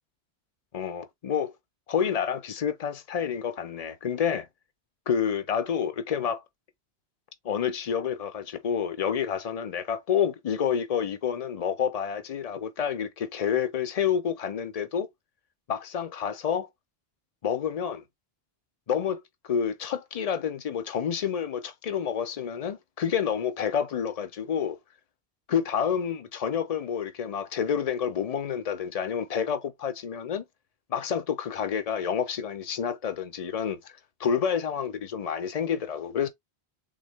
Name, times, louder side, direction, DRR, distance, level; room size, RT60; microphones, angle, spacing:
voice 1, 0.7-1.5 1.9-4.5 5.1-6.4 7.4-15.1 15.7-16.7 17.4-18.0 18.9-24.8 25.5-30.4 30.9-33.9 34.2-36.3, left 8 dB, 40° left, 0.7 m, -29 dB
4.0 x 3.5 x 3.2 m
omnidirectional pair, 1.1 m